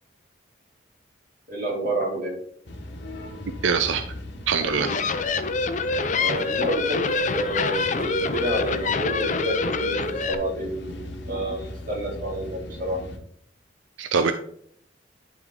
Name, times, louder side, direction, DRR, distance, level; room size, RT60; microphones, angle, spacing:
voice 1, 1.5-2.4 6.1-7.1 7.3-13.0, right 1 dB, 45° right, -2 dB, 2.5 m, -29 dB
sound 1, 2.7-13.2, left 1 dB, 70° left, 1.2 m, -39 dB
voice 2, 3.6-4.0 4.5-4.9 14.0-14.3, right 5 dB, 90° right, 8 dB, 0.5 m, -22 dB
sound 2, 4.6-10.3, left 4 dB, 40° left, 0.5 m, -26 dB
11.0 x 3.7 x 3.7 m, 0.64 s
head